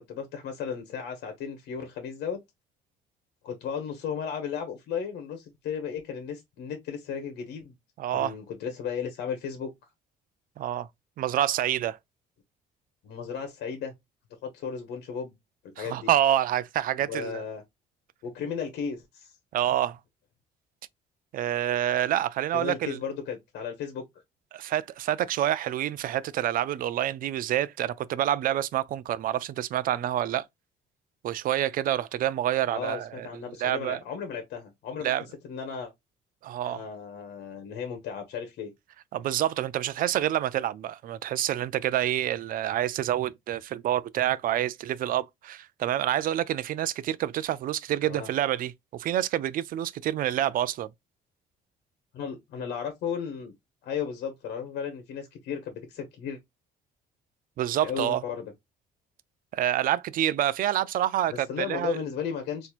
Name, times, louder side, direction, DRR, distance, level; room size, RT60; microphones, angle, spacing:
voice 1, 0.1-2.4 3.4-7.7 8.1-9.7 13.0-13.9 14.4-15.3 15.8-16.1 17.0-17.6 18.2-19.3 22.5-24.0 32.7-35.1 35.4-35.9 36.6-38.7 48.0-48.3 52.1-53.5 53.8-56.4 57.8-58.5 61.3-62.7, left 7 dB, 75° left, 1.1 m, -35 dB
voice 2, 8.0-8.3 10.6-10.9 11.2-12.0 15.8-17.4 19.5-20.0 21.3-23.0 24.5-30.4 31.2-34.0 35.0-35.2 36.4-36.8 39.1-50.9 57.6-58.2 59.5-62.0, right 12 dB, 55° right, 0.4 m, -27 dB
4.3 x 2.8 x 2.4 m
cardioid pair, 110°, 17 cm